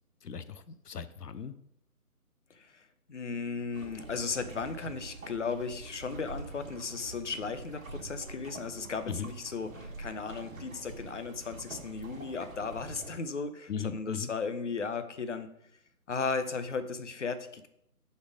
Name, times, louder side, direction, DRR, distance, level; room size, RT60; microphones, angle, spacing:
voice 1, 0.2-1.5 9.1-9.3 13.7-14.3, left 7 dB, 85° left, 13 dB, 0.7 m, -38 dB
voice 2, 2.5-15.5 16.1-17.7, left 4 dB, 50° left, 10 dB, 0.7 m, -36 dB
sound 1, 3.7-13.1, right 3 dB, 55° right, 1.4 m, -46 dB
6.7 x 4.4 x 5.0 m, 0.78 s
figure-of-eight pair, 160°, 46 cm